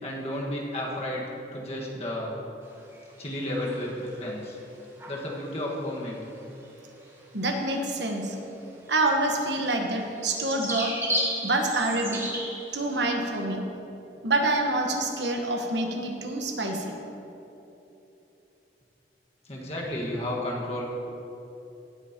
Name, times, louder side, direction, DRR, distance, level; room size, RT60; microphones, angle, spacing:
voice 1, 0.0-1.2 1.5-2.3 3.2-4.6 5.1-6.2 19.5-20.9, left 1 dB, 35° left, -3 dB, 1.6 m, -32 dB
sound 1, 2.7-3.3 3.6-4.2 4.4-4.5 5.0-5.4 6.5-6.7 7.0-7.1 7.8-8.0 8.3-8.4 8.9-12.7, equal, 15° right, 1.3 m, -33 dB
voice 2, 7.3-8.4 8.9-10.9 11.4-12.3 12.7-13.6 14.2-17.0, right 2 dB, 85° right, 2 dB, 1.2 m, -27 dB
16.5 x 9.2 x 2.9 m, 3.0 s
head